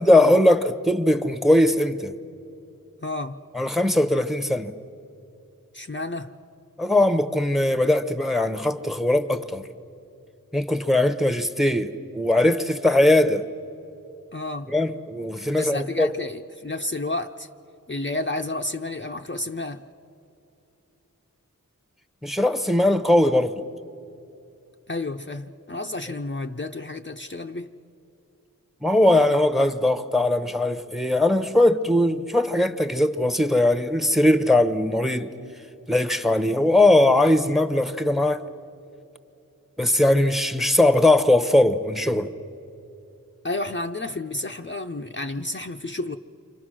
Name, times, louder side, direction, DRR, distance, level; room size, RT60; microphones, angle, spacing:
voice 1, 0.0-2.1 3.5-4.7 6.8-9.6 10.5-13.5 14.7-16.1 22.2-23.5 28.8-35.3 35.9-38.4 39.8-42.3, left 1 dB, ahead, 1.0 m, -20 dB
voice 2, 3.0-3.4 5.7-6.3 14.3-14.7 15.6-17.5 17.9-19.8 24.9-27.7 43.4-46.2, left 2 dB, 35° left, 0.6 m, -31 dB
29.0 x 25.5 x 6.3 m
wide cardioid pair, 55°, 34 cm